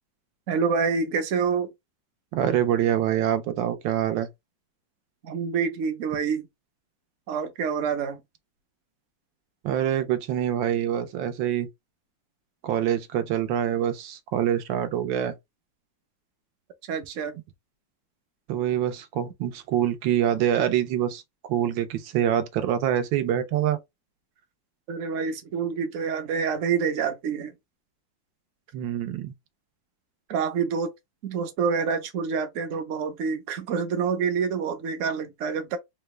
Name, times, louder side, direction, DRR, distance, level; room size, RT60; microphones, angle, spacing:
voice 1, 0.5-1.7 5.2-6.4 7.3-8.2 16.9-17.3 24.9-27.5 30.3-30.9 31.2-35.8, right 6 dB, 60° right, 0.8 m, -27 dB
voice 2, 2.3-4.3 9.6-11.7 12.6-15.3 18.5-23.8 28.7-29.3, right 10 dB, 85° right, 1.4 m, -25 dB
3.9 x 2.2 x 3.0 m
omnidirectional pair, 2.0 m